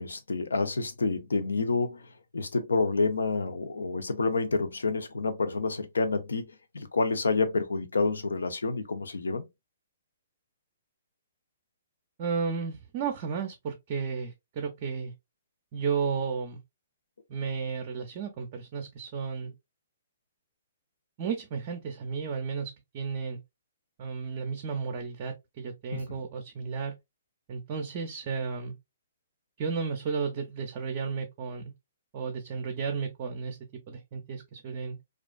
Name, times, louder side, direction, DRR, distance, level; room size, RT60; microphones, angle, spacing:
voice 1, 0.0-2.1 2.3-9.5 25.9-26.0, left 3 dB, 85° left, 0.5 m, -28 dB
voice 2, 12.2-15.1 15.7-16.6 17.3-19.5 21.2-23.4 24.0-27.0 27.5-28.7 29.6-31.7 32.1-33.6 33.9-35.0, right 5 dB, 40° right, 0.4 m, -33 dB
2.4 x 2.3 x 2.2 m
hypercardioid pair, 130°, 0 cm